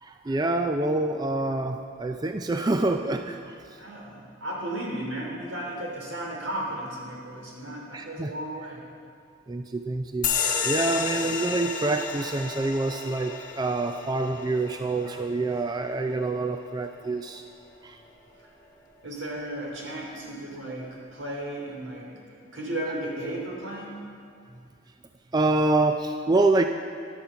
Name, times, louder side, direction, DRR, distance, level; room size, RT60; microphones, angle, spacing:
voice 1, 0.0-3.5 7.9-8.3 9.5-10.3 10.6-17.4 17.8-18.0 25.3-26.7, right 2 dB, 20° right, 6 dB, 0.4 m, -26 dB
voice 2, 3.8-8.8 11.1-11.3 19.0-24.0, right 1 dB, 80° right, -2 dB, 3.2 m, -35 dB
sound 1, 10.2-17.3, left 6 dB, 40° left, 1.3 m, -32 dB
11.5 x 10.5 x 6.9 m, 2.3 s
head